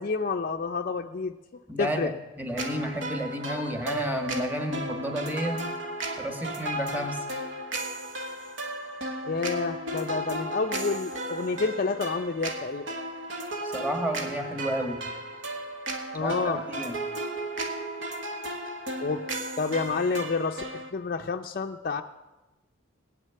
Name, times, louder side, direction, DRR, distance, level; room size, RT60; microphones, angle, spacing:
voice 1, 0.0-1.4 1.8-2.1 9.3-12.9 16.1-16.6 19.0-19.2 19.6-22.0, left 4 dB, 45° left, 5 dB, 0.5 m, -29 dB
voice 2, 1.7-5.7 6.2-7.2 13.6-15.0 16.1-17.0, equal, 10° right, 4 dB, 1.4 m, -31 dB
sound 1, 2.6-20.9, right 1 dB, 65° right, 1.3 m, -34 dB
18.0 x 6.4 x 8.7 m, 1.1 s
head